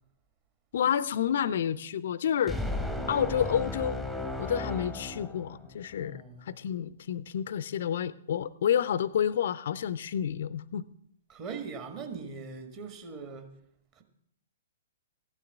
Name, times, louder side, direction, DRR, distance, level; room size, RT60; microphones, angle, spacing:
voice 1, 0.7-2.6 3.1-4.0 4.4-10.8, left 9 dB, 50° left, 0.4 m, -29 dB
sound 1, 2.5-5.9, left 1 dB, 5° right, 0.9 m, -35 dB
voice 2, 5.9-6.6 11.3-13.5 14.0-14.1, right 5 dB, 30° right, 1.6 m, -41 dB
14.5 x 11.5 x 3.5 m
figure-of-eight pair, 115°, 0 cm